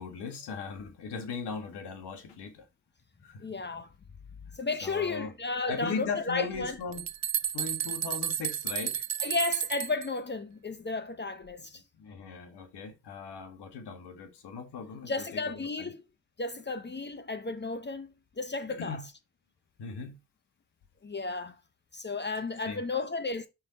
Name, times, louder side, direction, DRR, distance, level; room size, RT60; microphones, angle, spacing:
voice 1, 0.0-2.7 3.2-3.6 4.8-5.3 5.7-7.1 7.5-9.1 11.6-15.5 15.8-15.9 18.8-19.1 19.8-20.2 22.6-22.8, left 5 dB, 70° left, 1.7 m, -38 dB
voice 2, 3.4-3.9 4.5-6.8 9.2-11.8 15.0-16.0 16.4-19.0 21.0-21.6 21.9-23.5, left 3 dB, 25° left, 0.8 m, -33 dB
sound 1, 6.5-10.1, right 10 dB, 40° right, 0.6 m, -32 dB
5.7 x 4.6 x 4.1 m
supercardioid pair, 50°, 42 cm